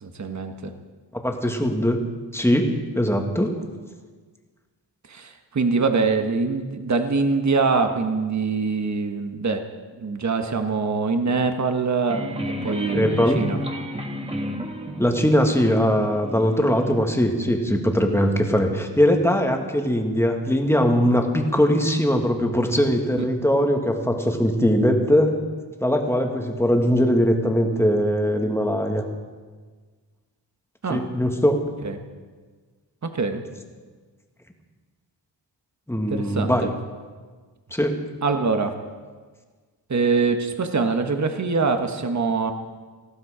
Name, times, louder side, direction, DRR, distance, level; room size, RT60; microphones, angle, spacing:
voice 1, 0.0-0.7 5.1-9.6 10.0-12.2 12.6-13.6 23.1-23.2 30.8-31.0 31.8-32.0 33.0-33.4 36.1-36.7 38.2-38.7 39.9-42.5, right 4 dB, 40° right, 6 dB, 1.3 m, -23 dB
voice 2, 1.1-2.0 2.3-3.6 12.9-13.4 15.0-25.3 25.8-29.0 30.9-31.6 35.9-36.7 37.7-37.9, equal, 5° left, 3 dB, 1.7 m, -21 dB
sound 1, 12.1-17.0, equal, 15° right, 1.5 m, -32 dB
19.0 x 15.0 x 5.0 m, 1.4 s
wide cardioid pair, 135°, 43 cm